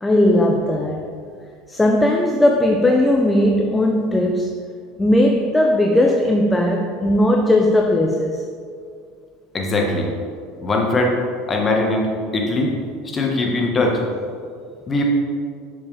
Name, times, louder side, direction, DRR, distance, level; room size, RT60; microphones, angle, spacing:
voice 1, 0.0-1.2 1.7-4.6 5.0-8.4, left 1 dB, 10° left, 0.5 m, -17 dB
voice 2, 9.5-10.1 10.6-11.2 11.5-12.7 13.1-14.0 14.9-15.0, left 2 dB, 30° left, 1.3 m, -20 dB
6.6 x 5.5 x 3.4 m
hypercardioid pair, 85°, 0 cm